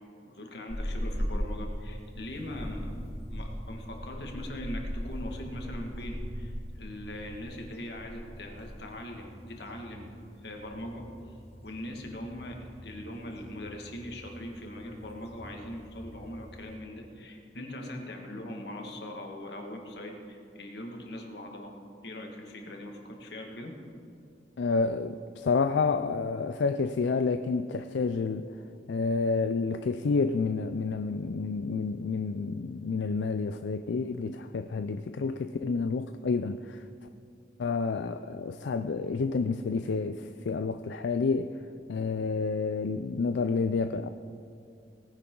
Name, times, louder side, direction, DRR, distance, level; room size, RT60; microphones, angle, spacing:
voice 1, 0.2-10.1 10.4-11.4 11.6-21.7 22.0-23.7, left 1 dB, 70° left, 1 dB, 1.9 m, -41 dB
sound 1, 0.7-16.8, equal, 35° left, 2.1 m, -40 dB
voice 2, 24.6-28.6 28.9-36.8 37.6-41.6 41.9-44.1, left 4 dB, 90° left, 9 dB, 0.4 m, -29 dB
18.5 x 10.5 x 3.9 m, 2.5 s
head